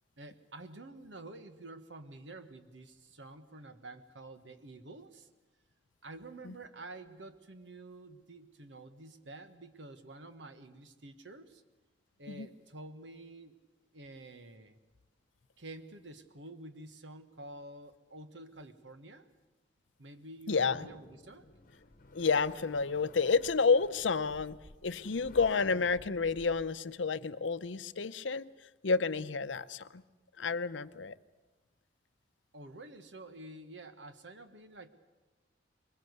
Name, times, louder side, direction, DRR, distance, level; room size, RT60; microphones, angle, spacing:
voice 1, 0.2-5.3 6.0-11.6 12.2-13.5 13.9-14.8 15.6-19.3 20.0-21.4 32.5-34.9, right 2 dB, 75° right, 9 dB, 1.4 m, -49 dB
voice 2, 20.5-20.8 22.1-24.6 24.8-28.5 28.8-30.0 30.4-31.1, left 4 dB, 85° left, 13 dB, 0.7 m, -30 dB
sound 1, 20.5-26.7, left 2 dB, 50° left, 1.1 m, -54 dB
22.5 x 21.5 x 8.1 m, 1.2 s
head